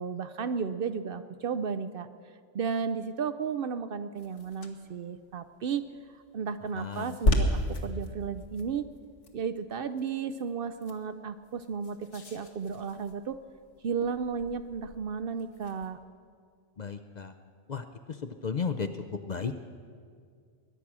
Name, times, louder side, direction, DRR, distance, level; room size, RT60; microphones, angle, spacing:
voice 1, 0.0-2.1 2.5-5.8 6.1-8.9 9.3-13.4 13.8-16.0, right 6 dB, 60° right, 12 dB, 0.7 m, -33 dB
sound 1, 4.2-15.9, left 1 dB, 80° left, 1.6 m, -35 dB
voice 2, 6.8-7.1 16.8-17.3 17.7-17.8 18.4-18.9 19.3-19.5, left 5 dB, 50° left, 9 dB, 0.6 m, -33 dB
21.5 x 10.0 x 6.1 m, 2.2 s
omnidirectional pair, 1.2 m